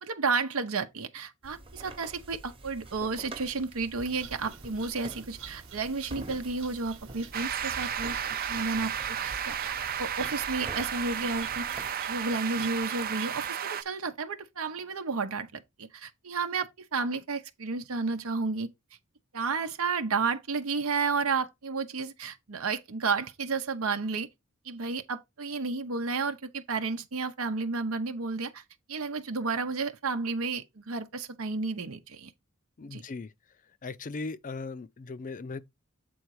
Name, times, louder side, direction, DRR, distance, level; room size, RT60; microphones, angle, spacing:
voice 1, 0.0-8.2 8.5-11.7 12.1-18.7 19.3-24.3 24.6-28.6 28.9-32.3 32.9-33.0, right 4 dB, 85° right, 0.8 m, -32 dB
sound 1, 1.4-11.9, right 2 dB, 25° right, 1.0 m, -46 dB
sound 2, 4.0-13.5, right 7 dB, 65° right, 1.0 m, -49 dB
sound 3, 7.3-13.8, right 8 dB, 45° right, 0.5 m, -33 dB
voice 2, 32.8-33.3 33.8-35.6, left 3 dB, 40° left, 0.5 m, -38 dB
8.0 x 3.9 x 4.7 m
head